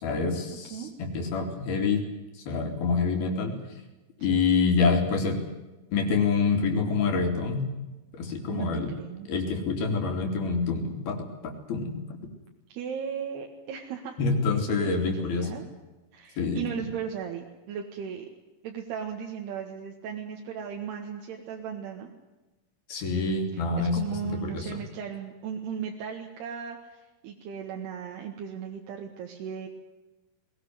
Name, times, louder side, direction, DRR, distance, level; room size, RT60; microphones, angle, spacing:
voice 1, 0.0-2.0 2.5-3.5 4.2-5.4 5.9-7.7 8.1-8.9 9.3-12.0 14.2-15.5 16.4-16.6 22.9-24.0 24.2-24.8, left 4 dB, 70° left, 5 dB, 5.0 m, -26 dB
voice 2, 8.5-9.3 12.7-14.2 14.8-15.7 16.1-18.3 18.6-22.1 23.5-29.7, right 7 dB, 85° right, 1 dB, 3.8 m, -36 dB
21.0 x 19.0 x 9.4 m, 1.1 s
omnidirectional pair, 4.5 m